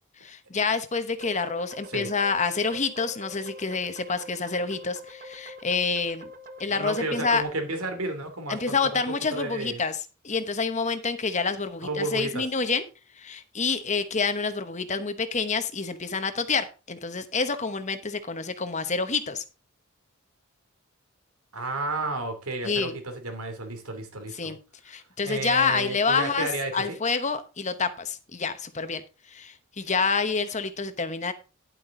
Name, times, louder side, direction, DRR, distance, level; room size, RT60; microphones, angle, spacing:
voice 1, 0.2-6.3 6.6-7.4 8.5-12.8 13.2-19.4 22.6-22.9 24.3-24.6 24.8-26.5 26.7-31.3, left 4 dB, 35° left, 10 dB, 1.1 m, -28 dB
sound 1, 1.2-7.4, left 1 dB, 40° right, 1.3 m, -45 dB
voice 2, 6.7-9.0 9.3-9.8 11.8-12.4 21.5-24.5 25.2-27.0, right 2 dB, 85° right, 6 dB, 3.0 m, -32 dB
11.0 x 8.4 x 3.8 m, 0.32 s
head